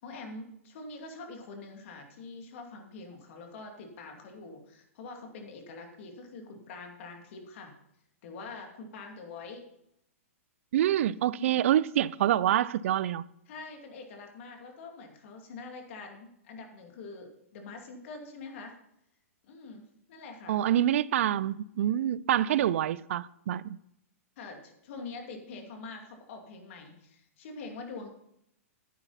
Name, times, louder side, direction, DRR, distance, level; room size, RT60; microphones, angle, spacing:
voice 1, 0.0-7.7 8.2-9.6 11.4-11.6 13.5-18.8 19.4-19.8 20.1-20.6 22.5-22.7 24.4-28.1, left 3 dB, 60° left, 2.5 m, -45 dB
voice 2, 10.7-13.2 20.5-23.8, right 11 dB, 65° right, 0.4 m, -26 dB
10.0 x 9.7 x 4.1 m
hypercardioid pair, 130°, 8 cm